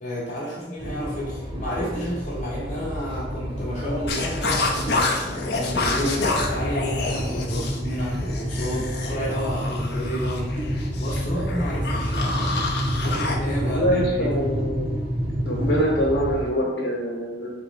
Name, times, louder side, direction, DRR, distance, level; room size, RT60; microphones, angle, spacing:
voice 1, 0.0-4.6 5.5-12.7 12.9-14.4, equal, 40° left, -7 dB, 0.9 m, -31 dB
sound 1, 0.8-16.5, equal, 30° right, 0.8 m, -28 dB
sound 2, 4.1-13.4, left 3 dB, 65° left, 0.6 m, -28 dB
voice 2, 13.6-14.9 15.4-17.5, equal, 80° left, -2 dB, 1.1 m, -24 dB
4.0 x 3.2 x 4.0 m, 1.1 s
head